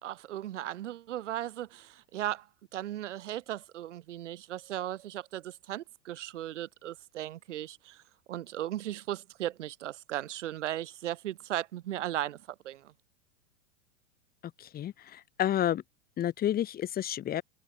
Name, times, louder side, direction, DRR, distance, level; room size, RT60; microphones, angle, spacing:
voice 1, 0.0-2.5 2.7-8.0 8.3-12.9, right 13 dB, 80° right, 1.6 m, -37 dB
voice 2, 15.4-15.8 16.2-17.4, left 11 dB, 25° left, 1.3 m, -29 dB
hypercardioid pair, 115°, 36 cm